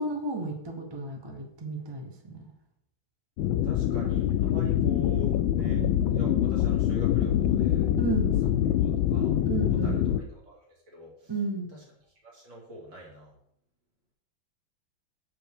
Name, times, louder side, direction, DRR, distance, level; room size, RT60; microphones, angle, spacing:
voice 1, 0.0-2.4 5.7-6.0 8.0-8.3 9.4-10.0 11.3-11.7, right 3 dB, 25° right, 3 dB, 0.6 m, -32 dB
sound 1, 3.4-10.2, left 11 dB, 80° left, 1.3 m, -25 dB
voice 2, 3.6-5.8 6.1-7.9 8.8-9.3 9.7-11.3 11.7-11.8 12.2-13.4, right 1 dB, 65° right, -4 dB, 3.3 m, -45 dB
7.5 x 7.1 x 3.5 m, 0.72 s
omnidirectional pair, 2.2 m